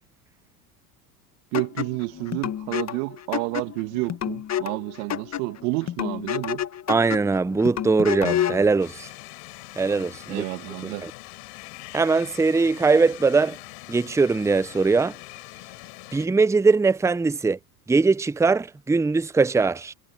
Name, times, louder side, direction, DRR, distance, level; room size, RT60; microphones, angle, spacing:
sound 1, 1.5-8.7, left 10 dB, 35° left, 1.8 m, -30 dB
voice 1, 1.5-6.7 10.3-11.1, right 27 dB, 65° right, 2.6 m, -30 dB
voice 2, 6.9-9.1 9.8-10.4 10.8-11.1 11.9-13.6 13.9-15.1 16.1-17.6 17.9-19.9, right 4 dB, 5° right, 0.7 m, -21 dB
sound 2, 8.8-16.3, left 37 dB, 65° left, 6.2 m, -43 dB
hypercardioid pair, 80°, 48 cm